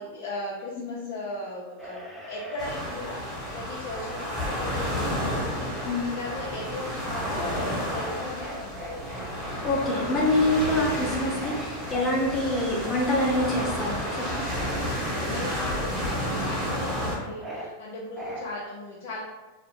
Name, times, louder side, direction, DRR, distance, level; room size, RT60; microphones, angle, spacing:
voice 1, 0.0-9.4 15.1-19.2, left 2 dB, 60° left, -6 dB, 0.6 m, -37 dB
sound 1, 1.8-3.0 3.8-5.9 7.0-9.9 11.4-14.9 15.9-16.3 16.6-17.7 18.2-18.4, right 1 dB, 10° right, 0.5 m, -42 dB
sound 2, 2.6-17.2, equal, 5° left, 1.2 m, -31 dB
voice 2, 9.6-14.3, left 1 dB, 25° left, -3 dB, 0.9 m, -25 dB
2.4 x 2.0 x 3.6 m, 1.2 s
hypercardioid pair, 115°, 0 cm